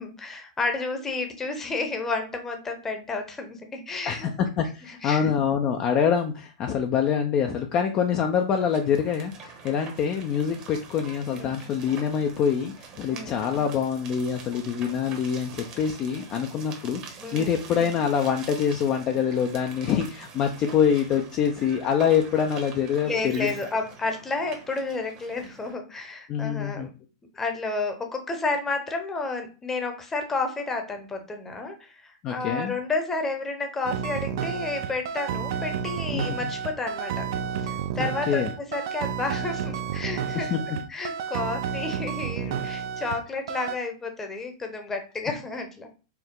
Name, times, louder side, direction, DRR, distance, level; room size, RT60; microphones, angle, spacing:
voice 1, 0.0-4.3 4.9-5.3 11.3-11.6 13.1-13.4 17.2-17.6 23.0-26.9 27.3-37.3 37.6-45.9, left 3 dB, 15° left, 5 dB, 0.8 m, -31 dB
voice 2, 4.0-23.6 26.3-26.9 32.2-32.7 36.1-36.5 38.0-38.5 40.3-40.6, left 7 dB, 35° left, 4 dB, 0.4 m, -25 dB
sound 1, 8.5-25.7, right 5 dB, 35° right, 1.0 m, -45 dB
sound 2, 33.8-43.2 43.5-43.8, right 7 dB, 65° right, 0.4 m, -31 dB
4.5 x 2.0 x 3.7 m, 0.34 s
hypercardioid pair, 130°, 2 cm